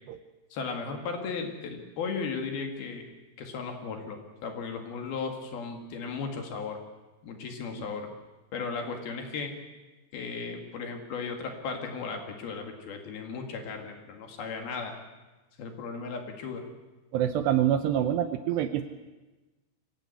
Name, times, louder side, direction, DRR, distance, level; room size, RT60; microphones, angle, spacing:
voice 1, 0.5-3.1 3.4-6.8 7.2-8.1 8.5-9.5 10.1-14.9 15.6-16.6, left 5 dB, 60° left, 4 dB, 3.5 m, -36 dB
voice 2, 17.1-18.8, right 10 dB, 75° right, 10 dB, 2.6 m, -26 dB
24.0 x 16.5 x 8.3 m, 1.2 s
omnidirectional pair, 5.5 m